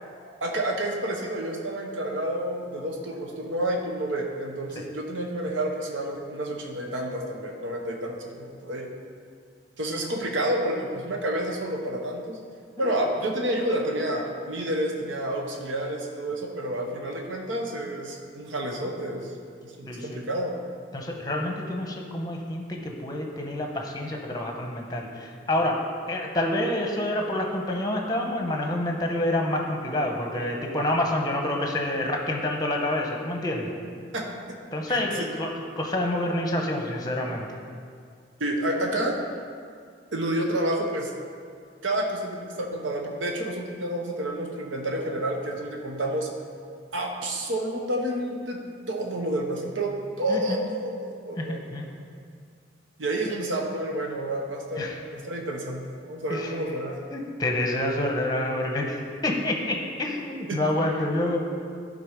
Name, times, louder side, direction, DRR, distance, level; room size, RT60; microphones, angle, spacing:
voice 1, 0.4-8.9 9.8-12.4 12.8-19.3 19.6-20.5 34.1-34.2 34.5-34.6 34.9-35.3 38.4-39.2 40.1-41.1 41.8-46.3 46.9-48.6 48.9-51.8 53.0-57.0 60.5-60.6, right 1 dB, 90° right, 1 dB, 1.0 m, -29 dB
voice 2, 12.8-13.1 19.9-20.2 20.9-33.7 34.7-37.5 50.3-50.6 51.4-51.9 54.8-54.9 56.3-56.5 57.1-61.4, left 1 dB, 20° left, 1 dB, 0.8 m, -28 dB
11.0 x 3.9 x 5.1 m, 2.2 s
head